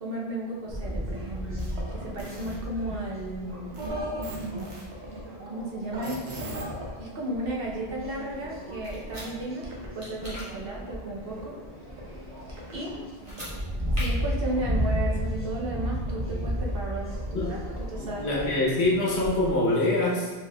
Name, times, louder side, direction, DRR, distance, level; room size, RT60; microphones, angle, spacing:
voice 1, 0.0-4.7 5.5-6.5 7.0-9.7 9.9-11.6 12.1-12.3 12.7-13.0 14.0-18.4, right 1 dB, 60° right, -3 dB, 0.9 m, -34 dB
sound 1, 0.7-19.5, equal, 10° right, 1.2 m, -34 dB
sound 2, 1.6-2.6 3.7-5.2 5.9-6.9 7.3-9.9 10.2-12.9 13.3-15.3 16.0-18.1 18.8-19.7, equal, 85° right, 1.2 m, -41 dB
sound 3, 8.8-9.3 10.0-10.5 13.2-13.5 13.9-14.1, left 1 dB, 30° right, 1.4 m, -39 dB
voice 2, 18.0-20.3, left 2 dB, 75° left, -5 dB, 1.3 m, -25 dB
4.6 x 4.1 x 2.3 m, 1.3 s
omnidirectional pair, 1.1 m